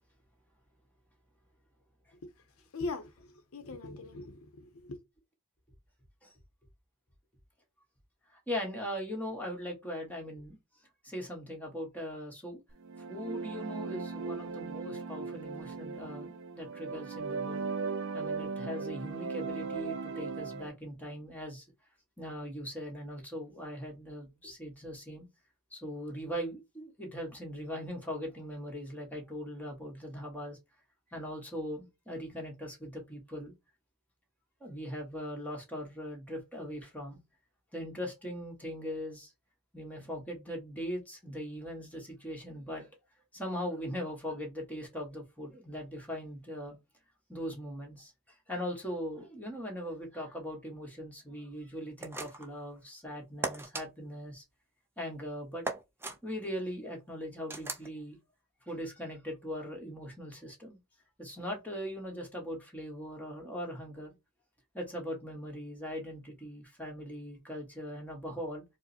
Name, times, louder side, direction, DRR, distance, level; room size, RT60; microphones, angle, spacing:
voice 1, 2.7-5.0, left 3 dB, 75° left, 0.6 m, -41 dB
voice 2, 8.3-10.6 11.0-12.6 13.0-17.6 18.1-21.7 22.2-25.3 25.7-30.6 31.1-33.5 34.6-37.2 37.7-39.3 39.7-42.9 43.3-46.8 47.3-48.1 48.5-54.4 55.0-55.6 56.2-58.2 58.7-60.8 61.2-64.1 64.7-68.6, equal, 5° left, 1.3 m, -40 dB
sound 1, 12.8-20.7, right 4 dB, 60° right, 0.5 m, -38 dB
sound 2, 52.0-52.6 53.4-53.9 55.6-56.2 57.5-57.9, right 2 dB, 10° right, 0.5 m, -37 dB
4.7 x 2.1 x 2.7 m
head